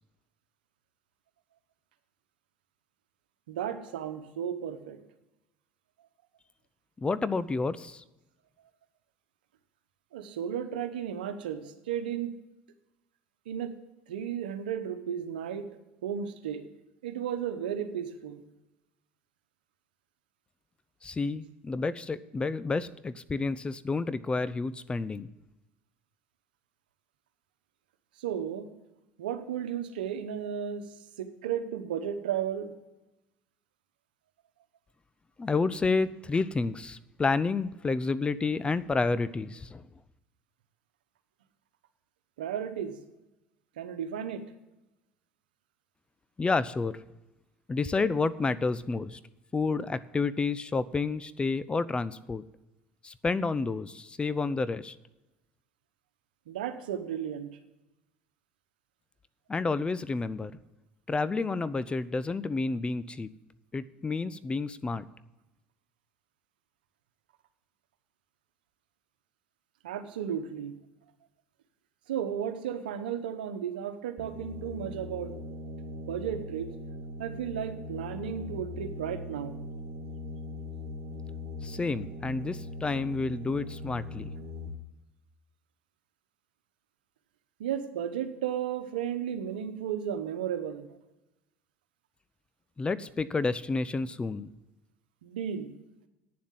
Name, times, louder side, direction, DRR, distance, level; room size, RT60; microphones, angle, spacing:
voice 1, 3.5-5.0 10.1-12.3 13.5-13.7 14.1-15.7 16.0-16.6 17.0-18.4 28.2-28.7 29.2-30.9 31.2-32.7 42.4-43.0 43.8-44.4 56.5-57.5 69.8-70.7 72.1-75.3 76.1-76.7 77.2-79.5 87.6-90.9 95.2-95.7, right 9 dB, 90° right, 9 dB, 1.0 m, -34 dB
voice 2, 7.0-8.0 21.0-25.3 35.4-39.9 46.4-47.0 47.7-49.2 49.5-52.4 53.0-55.0 59.5-60.5 61.1-63.3 63.7-65.1 81.6-84.3 92.8-94.5, left 4 dB, 20° left, 18 dB, 0.5 m, -30 dB
sound 1, 74.2-84.7, left 1 dB, 65° right, 1.2 m, -40 dB
9.6 x 7.3 x 7.3 m, 0.97 s
hypercardioid pair, 80°, 5 cm